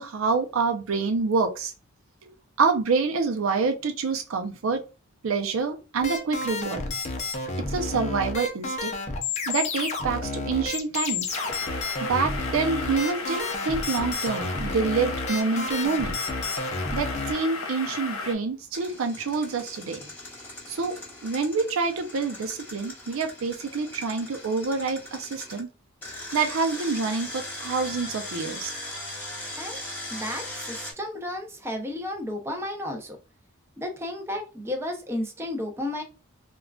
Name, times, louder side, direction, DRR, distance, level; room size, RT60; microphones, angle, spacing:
voice 1, 0.0-1.7 2.2-2.3 2.6-4.8 5.2-6.8 7.7-8.9 9.5-11.3 12.1-16.2 16.9-20.1 20.7-25.7 26.3-28.7, right 4 dB, 90° right, 0.5 m, -27 dB
sound 1, 6.0-17.3, left 3 dB, 35° left, 0.5 m, -31 dB
sound 2, 11.3-18.4, left 3 dB, 90° left, 0.5 m, -35 dB
Engine, 18.7-25.6 26.0-30.9, left 1 dB, 10° left, 1.1 m, -39 dB
voice 2, 30.1-33.2 33.8-36.0, left 1 dB, 10° right, 0.5 m, -33 dB
3.5 x 2.3 x 2.3 m
head